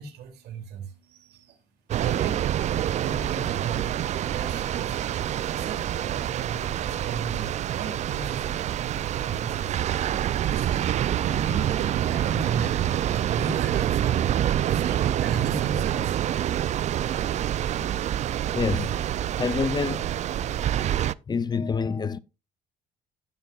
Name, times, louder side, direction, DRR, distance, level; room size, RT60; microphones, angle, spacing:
voice 1, 0.0-1.6 2.0-3.9 4.2-5.0 5.4-9.8 10.3-12.9 13.1-16.2, right 6 dB, 80° right, 2.7 m, -35 dB
sound 1, 1.9-21.1, right 11 dB, 45° right, 0.4 m, -27 dB
voice 2, 18.5-19.0 19.4-20.1 21.3-22.2, left 5 dB, 25° left, 0.5 m, -27 dB
17.0 x 6.6 x 2.3 m
cardioid pair, 110°, 17 cm